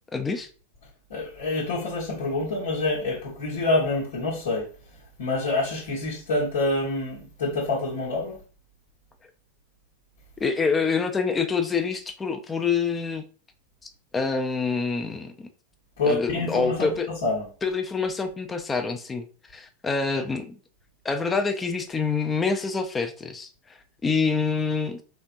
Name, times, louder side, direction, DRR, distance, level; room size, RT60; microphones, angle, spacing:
voice 1, 0.1-0.5 10.4-13.2 14.1-15.5 16.0-17.1 17.6-19.3 19.5-20.6 21.0-25.0, left 5 dB, 15° left, 0.5 m, -26 dB
voice 2, 1.1-4.7 5.2-8.4 16.0-17.5, left 2 dB, 60° left, 1.1 m, -27 dB
4.4 x 3.3 x 2.6 m
figure-of-eight pair, 90°, 0 cm